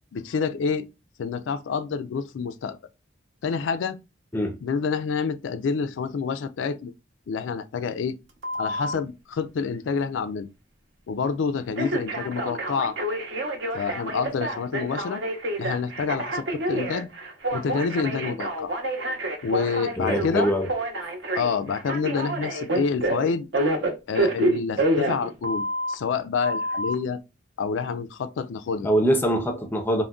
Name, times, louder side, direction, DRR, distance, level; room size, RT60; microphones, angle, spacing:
voice 1, 0.1-0.9 1.2-2.8 3.4-4.0 4.6-6.9 7.3-8.2 8.5-10.5 11.1-13.0 13.7-15.2 15.6-17.1 17.5-18.7 19.4-20.5 21.3-23.5 24.1-27.2 27.6-28.9, left 5 dB, 75° left, 0.4 m, -28 dB
Telephone, 8.4-9.0 11.8-25.9 26.4-26.9, right 1 dB, 60° right, 0.7 m, -28 dB
voice 2, 20.0-20.7 28.8-30.0, equal, 10° left, 0.4 m, -23 dB
3.6 x 2.1 x 2.3 m
head